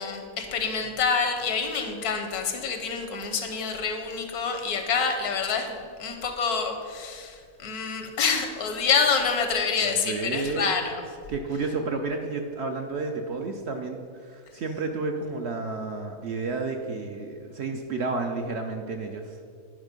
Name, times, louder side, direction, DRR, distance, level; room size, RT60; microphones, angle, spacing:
voice 1, 0.0-11.0, left 5 dB, 80° left, 4 dB, 1.4 m, -27 dB
voice 2, 9.8-10.7 11.3-19.4, right 3 dB, 60° right, 4 dB, 0.7 m, -31 dB
10.5 x 4.8 x 5.2 m, 2.2 s
omnidirectional pair, 1.6 m